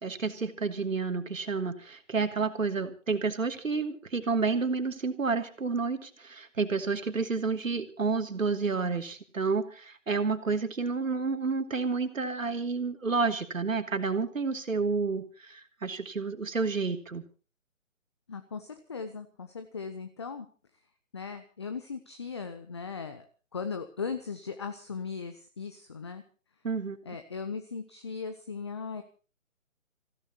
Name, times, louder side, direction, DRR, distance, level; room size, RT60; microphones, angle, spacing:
voice 1, 0.0-17.2 26.6-27.0, right 4 dB, 80° right, 7 dB, 2.7 m, -30 dB
voice 2, 18.3-20.5 21.1-23.3 23.5-26.2 27.0-29.0, left 5 dB, 20° left, 9 dB, 0.7 m, -38 dB
27.5 x 16.0 x 3.0 m, 0.36 s
figure-of-eight pair, 160°, 39 cm